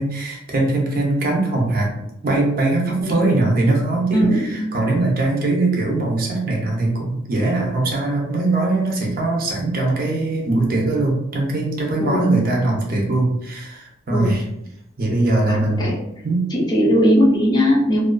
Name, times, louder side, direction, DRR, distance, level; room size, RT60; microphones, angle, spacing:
voice 1, 0.0-1.9 2.2-14.4 15.0-15.9 16.2-16.4, right 2 dB, 45° right, -1 dB, 0.6 m, -21 dB
voice 2, 4.1-4.6 12.0-12.3 14.1-14.3 15.5-16.0 16.5-18.0, equal, 20° left, -3 dB, 0.5 m, -18 dB
2.4 x 2.3 x 2.2 m, 0.80 s
head